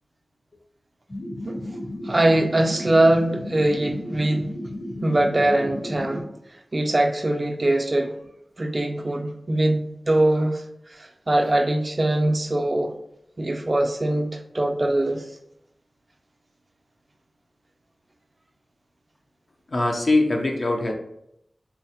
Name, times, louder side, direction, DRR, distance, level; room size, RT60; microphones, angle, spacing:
sound 1, 1.1-6.2, left 1 dB, 25° left, 0.6 m, -34 dB
voice 1, 2.0-4.5 5.0-6.2 6.7-8.1 8.6-10.6 11.0-12.9 13.4-15.2, right 1 dB, 45° right, 0.4 m, -22 dB
voice 2, 19.7-20.9, left 2 dB, 65° left, 0.5 m, -22 dB
4.1 x 2.0 x 2.7 m
cardioid pair, 45°, 0 cm